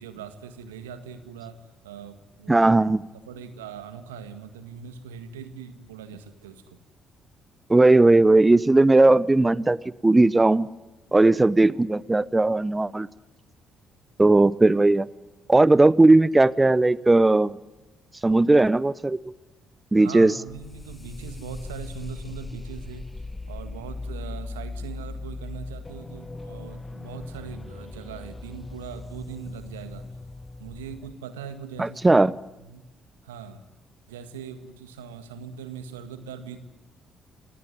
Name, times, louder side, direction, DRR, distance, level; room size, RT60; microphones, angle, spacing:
voice 1, 0.0-2.7 3.1-6.8 20.0-23.0 23.5-30.1 30.6-32.3 32.6-32.8 33.2-33.6 34.1-36.6, right 7 dB, 85° right, 10 dB, 1.8 m, -41 dB
voice 2, 2.5-3.1 7.7-9.8 10.0-10.7 11.1-13.1 14.2-15.1 15.5-17.5 18.2-19.2 19.9-20.3 31.8-32.3, right 2 dB, 20° right, 20 dB, 0.8 m, -17 dB
sound 1, 20.5-31.1, left 3 dB, 20° left, 1.2 m, -39 dB
28.0 x 18.5 x 9.5 m, 1.1 s
hypercardioid pair, 45°, 0 cm